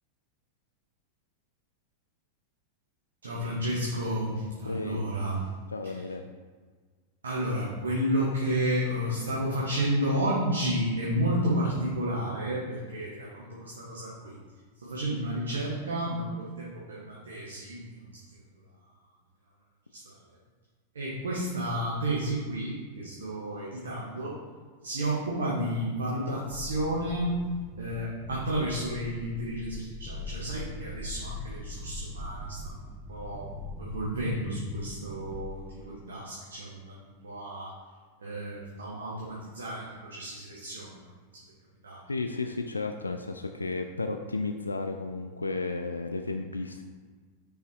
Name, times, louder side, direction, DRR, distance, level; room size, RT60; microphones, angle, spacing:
voice 1, 3.2-5.5 5.8-5.9 7.2-14.4 14.8-17.9 19.9-20.0 20.9-24.4 24.8-27.4 27.8-32.8 33.1-33.4 33.8-37.7 38.2-41.0 41.3-41.4 41.8-42.0, right 1 dB, 70° right, -6 dB, 1.3 m, -31 dB
voice 2, 4.7-5.1 5.7-6.3 42.1-46.8, left 3 dB, 80° left, 5 dB, 0.3 m, -33 dB
sound 1, 26.5-35.9, left 1 dB, 5° right, 0.8 m, -41 dB
5.5 x 4.8 x 4.7 m, 1.5 s
figure-of-eight pair, 90°, 0 cm